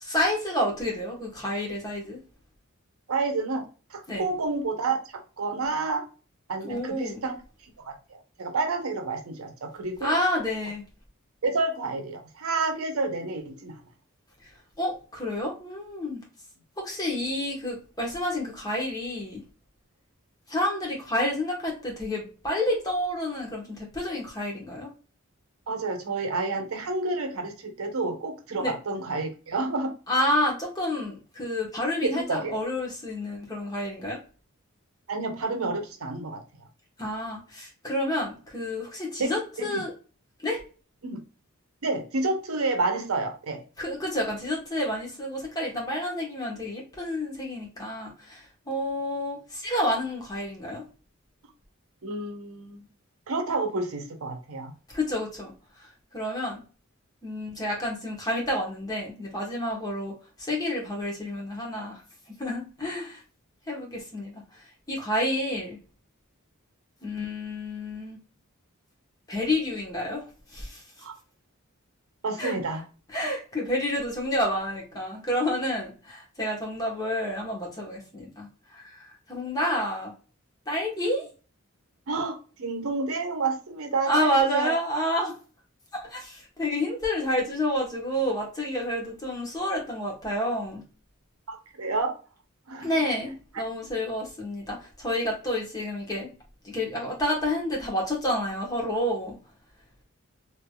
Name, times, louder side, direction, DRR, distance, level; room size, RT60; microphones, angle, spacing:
voice 1, 0.0-2.2 4.1-4.2 6.6-7.2 10.0-10.8 14.8-16.2 16.8-19.4 20.5-24.9 28.6-28.7 30.1-34.2 37.0-39.9 40.4-40.6 43.8-50.8 54.9-55.5 55.8-56.6 57.2-60.1 60.4-62.0 62.4-63.2 63.7-65.8 67.0-68.2 69.3-70.8 72.4-72.6 73.1-80.1 80.7-81.3 84.1-85.3 85.9-90.8 92.8-96.3 96.6-99.3, left 1 dB, 20° left, -2 dB, 1.1 m, -29 dB
voice 2, 3.1-6.1 6.5-7.4 7.8-10.2 11.4-13.8 25.7-29.9 32.0-32.6 35.1-36.4 39.2-39.3 39.6-39.8 41.0-41.2 41.8-43.6 52.0-52.8 53.3-54.7 71.0-71.2 72.2-72.8 82.1-84.7 91.5-92.1 92.7-92.9, right 3 dB, 80° right, 5 dB, 0.7 m, -29 dB
3.2 x 2.8 x 2.2 m, 0.36 s
head